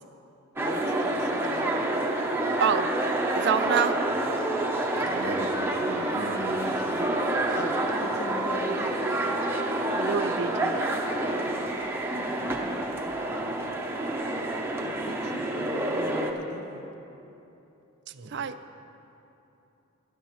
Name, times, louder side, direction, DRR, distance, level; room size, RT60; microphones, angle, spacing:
voice 1, 0.6-1.9 7.6-9.2 14.8-16.9, left 2 dB, 50° left, 7 dB, 0.7 m, -39 dB
sound 1, 0.6-16.3, right 1 dB, 10° right, 0.7 m, -28 dB
voice 2, 2.6-2.9 3.3-3.9 9.9-10.9 18.3-18.5, right 6 dB, 50° right, 11 dB, 0.4 m, -26 dB
voice 3, 5.0-7.6 18.1-18.4, right 1 dB, 85° right, 4 dB, 0.9 m, -39 dB
17.5 x 12.0 x 3.1 m, 2.9 s
head